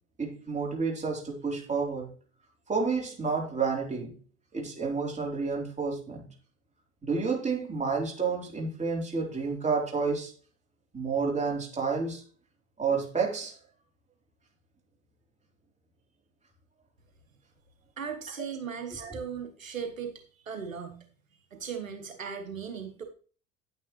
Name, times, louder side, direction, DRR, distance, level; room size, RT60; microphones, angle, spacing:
voice 1, 0.2-2.1 2.7-4.1 4.5-6.2 7.0-10.3 10.9-12.2 12.8-13.5 18.4-18.5 18.9-19.2, right 5 dB, 20° right, 3.7 m, -30 dB
voice 2, 18.0-21.0 21.3-23.0, right 6 dB, 85° right, 1.2 m, -38 dB
9.8 x 8.9 x 3.1 m
figure-of-eight pair, 70°, 39 cm